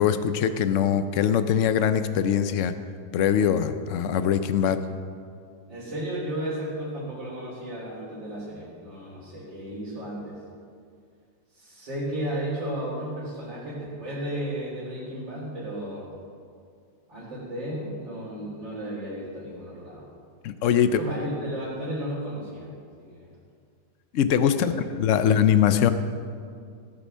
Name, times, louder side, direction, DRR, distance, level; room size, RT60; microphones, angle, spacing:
voice 1, 0.0-2.7 3.1-4.8 20.4-21.0 24.1-24.7 25.0-25.9, left 9 dB, 75° left, 11 dB, 0.7 m, -22 dB
voice 2, 5.7-10.4 11.5-16.1 17.1-20.1 20.9-22.7 23.0-23.3 24.5-24.7, right 1 dB, 85° right, -11 dB, 4.0 m, -34 dB
17.5 x 6.8 x 6.2 m, 2.2 s
omnidirectional pair, 2.0 m